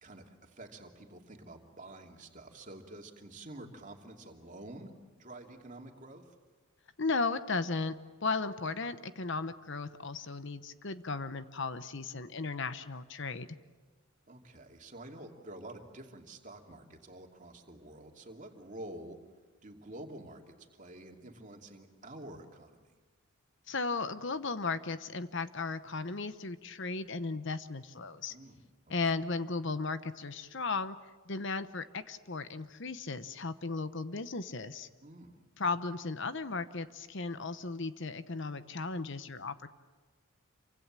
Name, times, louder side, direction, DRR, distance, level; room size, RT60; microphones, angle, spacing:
voice 1, 0.0-6.3 14.3-19.2 19.6-22.9 28.3-28.6 35.0-35.4, right 1 dB, 35° right, 3 dB, 2.7 m, -49 dB
voice 2, 7.0-8.0 8.2-13.5 23.7-28.3 28.9-31.0 31.3-34.9 35.6-39.7, left 4 dB, 55° left, 12 dB, 1.0 m, -35 dB
28.0 x 25.0 x 7.5 m, 1.4 s
head